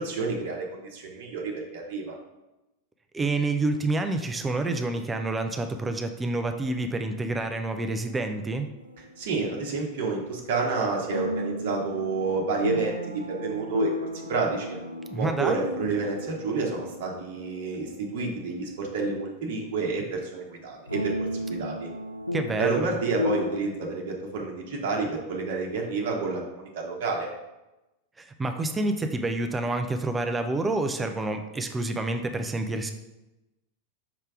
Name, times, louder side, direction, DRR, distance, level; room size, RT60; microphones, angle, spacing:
voice 1, 0.0-2.1 9.2-13.9 14.3-14.8 15.2-21.1 21.5-21.9 22.6-27.3, right 4 dB, 50° right, -1 dB, 1.0 m, -29 dB
voice 2, 3.1-8.7 15.1-15.6 22.3-22.9 28.2-32.9, right 2 dB, 15° right, 6 dB, 0.5 m, -28 dB
sound 1, 8.8-10.1 11.1-19.8 20.2-20.3 20.9-23.6, left 1 dB, 90° left, 0.4 m, -34 dB
5.9 x 3.3 x 4.8 m, 0.98 s
figure-of-eight pair, 90°, 0 cm